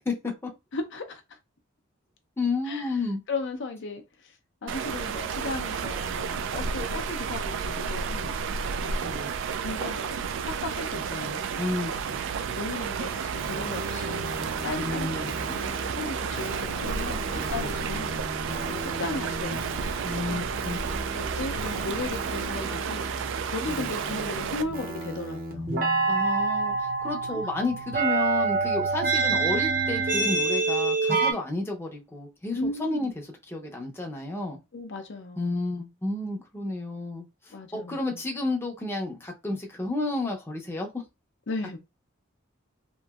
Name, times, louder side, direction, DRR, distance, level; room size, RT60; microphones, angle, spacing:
voice 1, 0.1-0.5 2.4-3.2 9.0-9.3 11.6-12.2 14.8-15.5 17.3-17.7 20.0-20.8 23.8-24.0 26.1-33.1 33.5-34.6 35.4-41.0, left 2 dB, 10° left, 0.6 m, -31 dB
voice 2, 0.7-1.2 2.7-2.9 3.3-4.3 4.6-8.3 8.8-8.9 9.6-11.6 12.5-18.2 18.7-19.9 20.3-20.6 21.1-23.1 23.4-25.7 27.3-27.4 32.6-33.1 34.7-35.6 37.5-38.2 41.5-41.8, left 3 dB, 65° left, 0.5 m, -36 dB
sound 1, 4.7-24.6, right 6 dB, 65° right, 0.3 m, -32 dB
sound 2, 13.4-31.3, right 3 dB, 45° right, 0.7 m, -30 dB
2.9 x 2.5 x 2.3 m
head